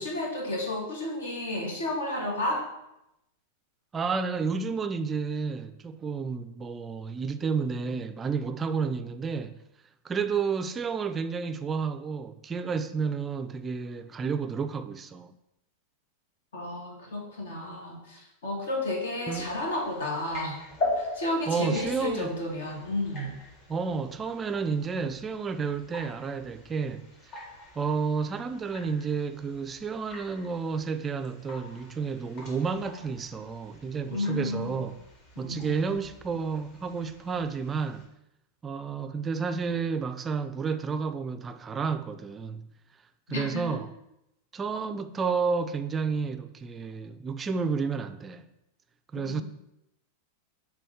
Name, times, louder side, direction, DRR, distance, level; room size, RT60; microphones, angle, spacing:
voice 1, 0.0-2.6 16.5-20.6 21.0-23.3 34.1-34.8 35.3-35.8 43.3-43.8 49.1-49.4, left 1 dB, 65° left, 1.6 m, -32 dB
voice 2, 3.9-9.6 10.0-15.3 19.3-19.5 21.5-22.3 23.7-27.1 27.3-27.4 27.8-34.9 35.4-38.1 38.6-42.7 43.3-43.9 44.5-48.5 49.1-49.4, right 5 dB, 20° right, 0.4 m, -31 dB
sound 1, 19.3-38.1, left 2 dB, 40° left, 1.9 m, -42 dB
6.8 x 3.2 x 4.8 m
figure-of-eight pair, 90°, 0 cm